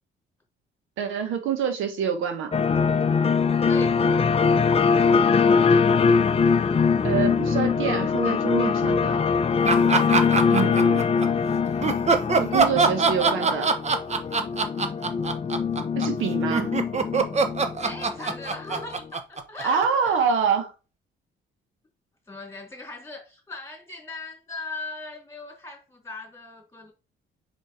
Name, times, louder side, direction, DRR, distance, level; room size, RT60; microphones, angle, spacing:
voice 1, 1.0-2.5 7.0-9.2 10.5-11.1 12.4-13.7 15.9-16.7 19.6-20.7, right 7 dB, 85° right, 1.4 m, -26 dB
sound 1, 2.5-18.8, left 5 dB, 30° left, 0.5 m, -22 dB
voice 2, 3.7-4.0 17.8-19.0 19.3-20.2 22.3-26.9, left 3 dB, 15° left, 3.1 m, -39 dB
sound 2, 9.6-11.3 11.8-20.1, right 4 dB, 35° right, 1.0 m, -23 dB
5.1 x 4.9 x 4.3 m
cardioid pair, 90°, 20 cm